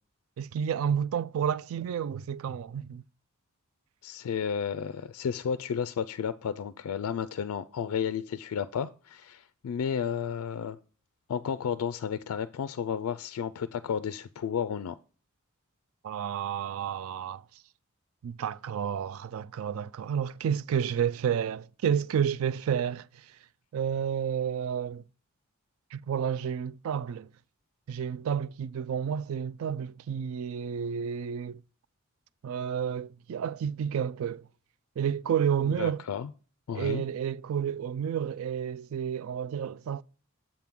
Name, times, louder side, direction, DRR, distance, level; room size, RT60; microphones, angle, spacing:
voice 1, 0.4-3.0 16.0-17.4 18.2-23.3 23.7-25.0 25.9-27.3 27.9-31.6 32.4-34.5 35.0-36.0 36.7-40.0, right 8 dB, 70° right, 0.3 m, -30 dB
voice 2, 4.0-10.8 11.3-15.0 35.8-36.3 36.7-37.0, left 7 dB, 85° left, 0.3 m, -32 dB
7.4 x 3.6 x 5.9 m
head